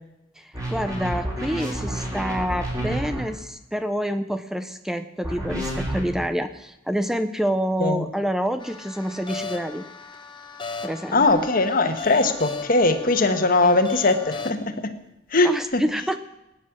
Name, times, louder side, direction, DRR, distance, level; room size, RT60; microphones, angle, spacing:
voice 1, 0.4-9.8 10.8-11.4 13.6-13.8 15.4-16.2, equal, ahead, 9 dB, 0.5 m, -27 dB
sound 1, 0.5-3.2 5.2-6.0, right 1 dB, 20° right, 4.7 m, -29 dB
sound 2, 8.6-14.5, left 4 dB, 25° left, 1.2 m, -37 dB
voice 2, 11.1-14.9 15.3-15.8, left 2 dB, 50° left, 7 dB, 1.4 m, -20 dB
19.0 x 9.7 x 7.3 m, 0.94 s
head